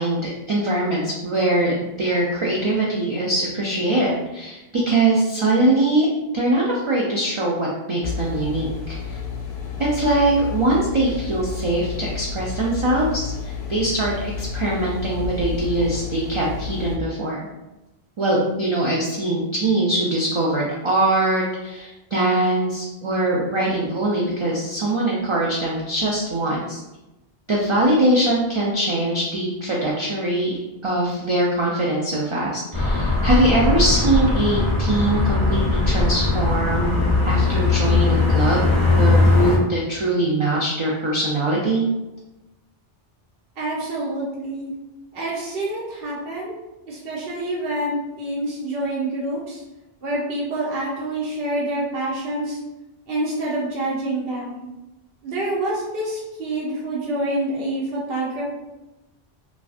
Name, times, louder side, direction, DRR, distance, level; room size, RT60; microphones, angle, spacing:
voice 1, 0.0-6.1 6.3-9.2 9.8-17.5 18.2-26.8 27.5-41.8, right 1 dB, 50° right, -4 dB, 0.3 m, -22 dB
sound 1, 8.0-17.0, left 6 dB, 85° left, 0.8 m, -31 dB
sound 2, 32.7-39.6, left 3 dB, 20° right, 0.9 m, -19 dB
voice 2, 43.6-44.7 45.1-46.6 46.9-49.6 50.0-52.6 53.1-54.6 55.2-58.4, right 1 dB, 70° right, -6 dB, 0.9 m, -27 dB
3.1 x 2.4 x 2.4 m, 0.99 s
omnidirectional pair, 1.0 m